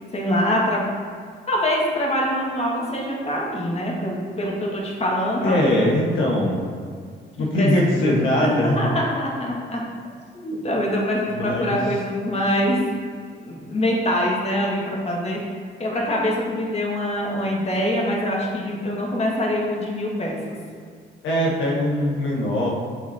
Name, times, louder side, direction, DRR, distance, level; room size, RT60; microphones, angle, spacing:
voice 1, 0.1-0.8 1.5-5.9 7.4-8.1 8.4-9.8 10.3-12.8 13.4-15.4 15.8-20.4, equal, 30° left, -3 dB, 1.9 m, -24 dB
voice 2, 5.4-6.7 7.4-8.9 11.3-11.8 21.2-22.7, left 1 dB, 85° left, -3 dB, 1.4 m, -21 dB
7.3 x 5.9 x 4.3 m, 2.1 s
cardioid pair, 90°, 20 cm